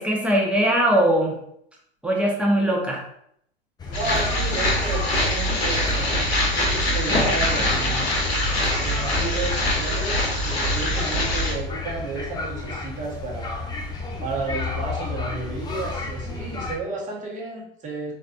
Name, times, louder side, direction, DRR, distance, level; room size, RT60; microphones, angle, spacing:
voice 1, 0.0-1.3 2.0-3.0, right 1 dB, 5° right, -2 dB, 0.9 m, -20 dB
sound 1, 3.8-16.8, left 3 dB, 15° left, 0.5 m, -32 dB
sound 2, 3.9-11.5, left 1 dB, 80° left, 1.3 m, -23 dB
voice 2, 3.9-8.0 8.7-13.7 14.2-18.1, right 3 dB, 25° right, -2 dB, 1.3 m, -32 dB
4.2 x 3.3 x 2.5 m, 0.71 s
figure-of-eight pair, 95°, 31 cm